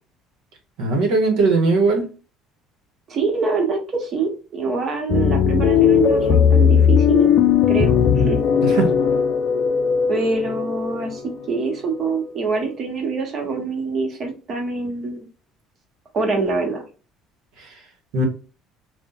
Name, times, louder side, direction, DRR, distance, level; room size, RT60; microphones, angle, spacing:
voice 1, 0.8-2.1 8.6-8.9 18.1-18.3, right 3 dB, 75° right, 0.9 m, -18 dB
voice 2, 3.1-7.3 7.7-8.4 10.1-11.2 11.5-15.3 16.1-16.8, right 4 dB, 50° right, 1.0 m, -25 dB
sound 1, 5.1-12.6, left 7 dB, 60° left, 0.4 m, -18 dB
2.6 x 2.1 x 3.7 m
hypercardioid pair, 70°, 0 cm